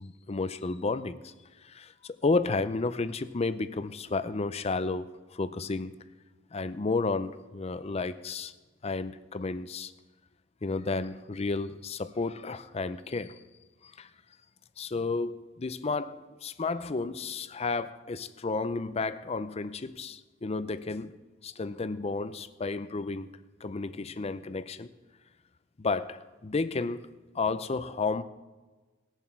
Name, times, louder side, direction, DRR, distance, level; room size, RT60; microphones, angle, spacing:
voice 1, 0.0-1.3 1.6-5.9 6.5-8.5 8.8-9.9 10.6-13.4 13.8-14.1 14.8-21.2 21.4-24.9 25.8-27.1 27.3-28.2, left 3 dB, 30° left, 0.5 m, -32 dB
19.5 x 7.4 x 4.5 m
head